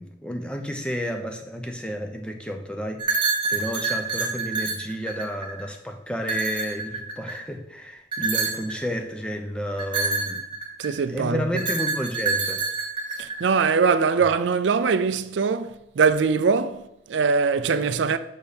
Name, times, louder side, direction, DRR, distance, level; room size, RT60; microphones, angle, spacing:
voice 1, 0.0-3.2 3.5-10.4 11.1-12.6, equal, 5° left, 0.7 m, -31 dB
sound 1, 3.0-5.7 6.2-7.4 8.1-8.8 9.8-11.0 11.6-13.6, right 4 dB, 25° right, 1.2 m, -27 dB
voice 2, 10.8-11.5 13.2-18.2, right 5 dB, 75° right, 0.4 m, -22 dB
6.5 x 4.5 x 5.2 m
head